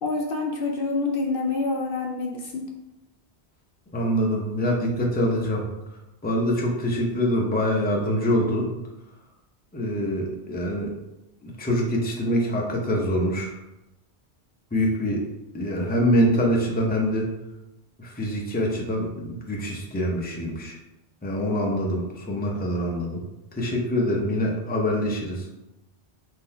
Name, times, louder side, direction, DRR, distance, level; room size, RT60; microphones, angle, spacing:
voice 1, 0.0-2.7, left 3 dB, 65° left, 1 dB, 0.7 m, -27 dB
voice 2, 3.9-5.6 6.2-8.7 9.7-10.9 11.4-13.5 14.7-15.2 15.5-17.3 18.0-20.8 21.2-23.2 23.6-25.5, equal, 10° left, -1 dB, 0.6 m, -25 dB
3.8 x 2.8 x 4.3 m, 0.92 s
omnidirectional pair, 1.1 m